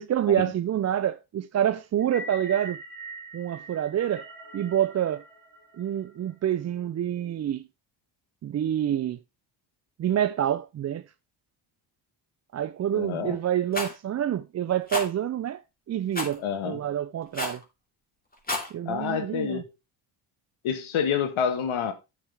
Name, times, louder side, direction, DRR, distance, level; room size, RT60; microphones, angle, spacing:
voice 1, 0.0-2.8 3.3-4.2 4.5-5.2 5.8-7.6 8.4-9.2 10.0-11.0 12.5-15.6 15.9-17.6 18.7-19.6, right 10 dB, 35° right, 0.4 m, -27 dB
sound 1, 2.0-6.3, right 1 dB, 60° right, 3.3 m, -42 dB
voice 2, 12.9-13.4 16.4-16.8 18.8-19.7 20.6-21.9, left 7 dB, 70° left, 1.5 m, -28 dB
Rattle, 13.7-13.9 14.9-15.1 16.1-16.4 17.3-17.6 18.3-18.7, left 2 dB, 15° left, 2.9 m, -30 dB
8.5 x 6.5 x 3.4 m
supercardioid pair, 70°, 50 cm